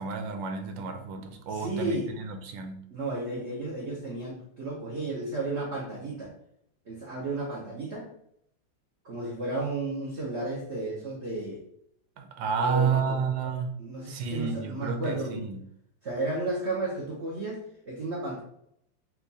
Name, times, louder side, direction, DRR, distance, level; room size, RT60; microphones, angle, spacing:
voice 1, 0.0-2.8 12.2-13.7 14.1-15.6, right 5 dB, 90° right, 6 dB, 1.4 m, -30 dB
voice 2, 1.2-2.1 2.9-6.3 6.9-8.1 9.0-11.6 12.6-13.2 13.8-15.4 16.0-18.4, right 2 dB, 45° right, -4 dB, 1.0 m, -33 dB
4.5 x 2.5 x 4.1 m, 0.71 s
omnidirectional pair, 2.0 m